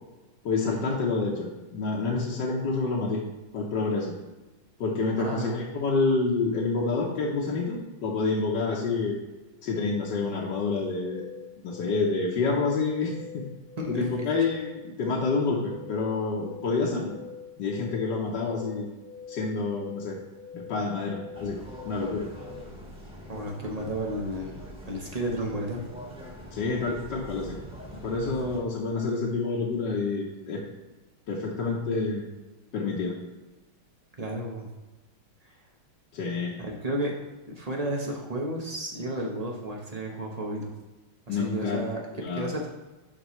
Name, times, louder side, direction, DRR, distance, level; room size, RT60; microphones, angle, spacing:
voice 1, 0.4-3.2 3.5-4.1 4.8-9.2 9.6-11.2 11.6-13.4 13.9-17.1 17.6-18.8 19.3-20.2 20.5-21.6 21.8-22.3 26.5-27.6 28.0-30.6 31.3-32.3 32.7-33.1 36.1-36.5 41.3-41.8 42.1-42.5, left 3 dB, 65° left, -3 dB, 1.4 m, -28 dB
voice 2, 5.2-5.5 13.8-14.5 23.3-24.6 24.9-25.8 34.2-34.7 35.4-35.5 36.6-37.2 37.5-40.7 41.3-42.7, right 1 dB, 45° right, 0 dB, 0.5 m, -32 dB
sound 1, 9.7-22.7, left 7 dB, 85° left, 1.5 m, -45 dB
sound 2, 21.3-28.6, equal, 5° right, 1.1 m, -43 dB
12.0 x 4.2 x 3.1 m, 1.1 s
omnidirectional pair, 2.3 m